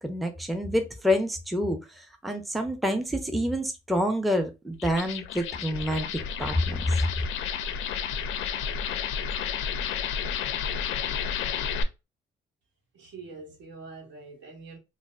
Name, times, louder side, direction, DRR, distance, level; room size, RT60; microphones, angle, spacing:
voice 1, 0.0-1.8 2.2-6.1 6.4-6.8, equal, ahead, 0.5 m, -27 dB
sound 1, 4.7-11.8, left 7 dB, 85° left, 0.4 m, -31 dB
voice 2, 12.9-14.8, right 3 dB, 70° right, 1.1 m, -44 dB
4.0 x 2.0 x 2.3 m
cardioid pair, 90°, 20 cm